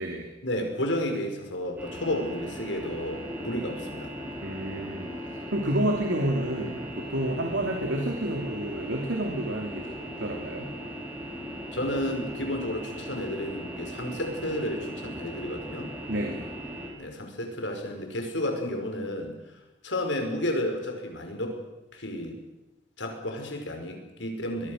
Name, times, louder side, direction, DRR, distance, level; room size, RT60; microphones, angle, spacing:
voice 1, 0.4-4.1 11.7-15.9 17.0-19.4 19.8-21.6 21.9-22.4 23.0-24.7, left 1 dB, 80° left, 4 dB, 5.4 m, -32 dB
sound 1, 1.8-16.9, equal, 10° right, 5.7 m, -38 dB
voice 2, 4.4-5.1 5.5-10.7 16.1-16.5, right 1 dB, 75° right, 2 dB, 2.9 m, -29 dB
24.0 x 21.5 x 6.6 m, 1.0 s
head